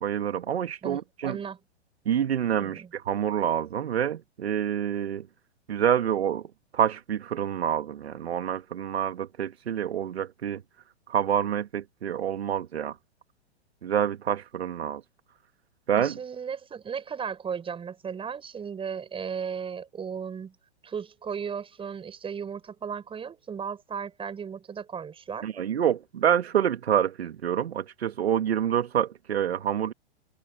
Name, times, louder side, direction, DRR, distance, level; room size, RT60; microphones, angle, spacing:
voice 1, 0.0-1.4 2.1-5.3 5.7-6.4 6.7-10.6 11.1-13.0 13.8-15.0 15.9-16.2 25.4-29.9, right 9 dB, 70° right, 2.0 m, -27 dB
voice 2, 0.8-1.6 2.6-2.9 15.9-20.6 20.8-25.5, right 7 dB, 15° right, 6.1 m, -35 dB
hypercardioid pair, 115°, 33 cm